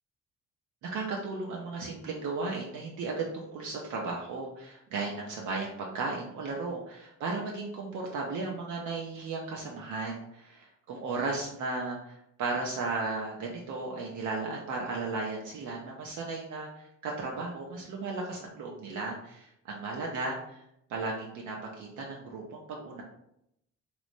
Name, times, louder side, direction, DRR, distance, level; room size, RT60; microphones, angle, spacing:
voice 1, 0.8-20.6 20.9-23.0, right 3 dB, 75° right, -1 dB, 0.5 m, -35 dB
3.0 x 2.0 x 2.5 m, 0.77 s
cardioid pair, 90°, 30 cm